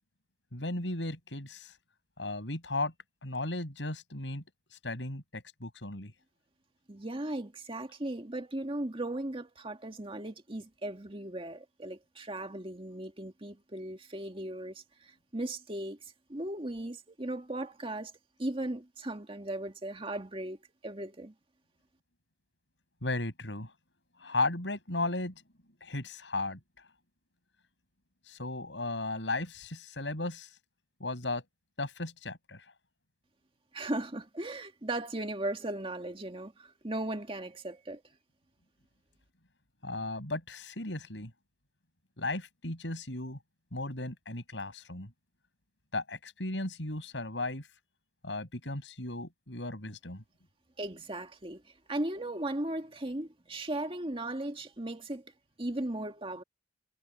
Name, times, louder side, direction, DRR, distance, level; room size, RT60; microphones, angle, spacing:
voice 1, 0.5-1.7 2.2-2.9 3.2-4.4 4.8-6.1 23.0-23.7 24.2-25.3 25.8-26.6 28.3-30.5 31.0-31.4 31.8-32.6 39.8-41.3 42.2-43.4 43.7-45.1 45.9-47.7 48.2-50.2, left 2 dB, 85° left, 6.5 m, -35 dB
voice 2, 6.9-18.1 18.4-20.6 20.8-21.3 33.7-38.0 50.8-51.6 51.9-55.2 55.6-56.4, right 1 dB, 30° right, 2.0 m, -37 dB
head